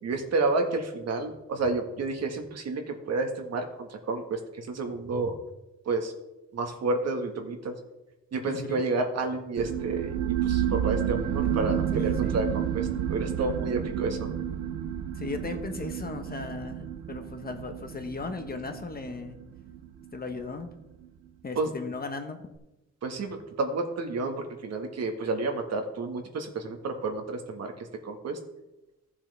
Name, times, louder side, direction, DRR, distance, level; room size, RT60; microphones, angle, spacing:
voice 1, 0.0-5.4 5.9-6.1 6.5-7.8 8.3-14.3 21.6-21.7 23.0-28.4, right 3 dB, 55° right, 4 dB, 1.7 m, -30 dB
voice 2, 8.5-8.8 11.9-12.4 15.1-19.4 20.1-20.7 21.4-22.4, left 4 dB, 30° left, 6 dB, 1.3 m, -37 dB
sound 1, 9.6-20.7, right 10 dB, 85° right, 0.8 m, -31 dB
14.5 x 7.3 x 3.5 m, 0.96 s
cardioid pair, 90°, 30 cm